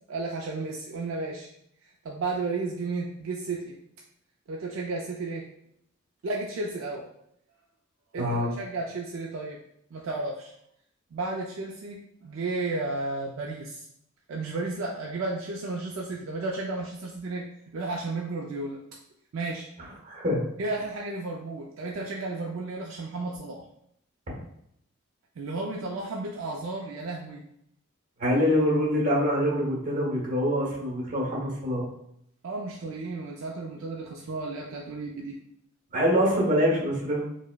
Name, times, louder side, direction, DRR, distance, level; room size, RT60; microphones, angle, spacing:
voice 1, 0.1-1.5 1.8-3.8 4.5-5.5 6.2-7.1 8.1-9.6 9.9-10.5 11.1-13.9 14.3-17.5 17.7-18.8 19.3-19.7 20.6-23.6 25.4-27.4 32.4-35.4, right 3 dB, 65° right, -1 dB, 0.4 m, -33 dB
voice 2, 8.2-8.5 20.0-20.5 24.3-24.4 28.2-31.9 35.9-37.2, equal, 40° right, -2 dB, 1.0 m, -25 dB
4.6 x 2.1 x 2.2 m, 0.74 s
head